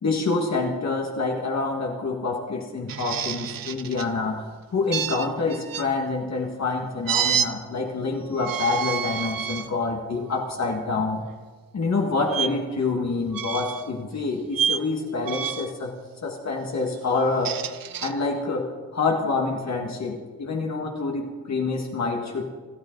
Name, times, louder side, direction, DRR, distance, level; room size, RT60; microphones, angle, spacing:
voice 1, 0.0-11.2 11.7-16.0 16.2-17.6 18.0-22.5, left 3 dB, 45° left, 0 dB, 1.8 m, -27 dB
sound 1, 2.9-4.1 4.9-5.9 7.1-7.5 8.3-9.7 10.3-10.5 12.3-12.5 13.3-13.9 14.5-14.8 15.2-15.8 17.2-18.1, right 8 dB, 65° right, 0.8 m, -28 dB
25.5 x 13.5 x 3.9 m, 1.4 s
wide cardioid pair, 170°, 37 cm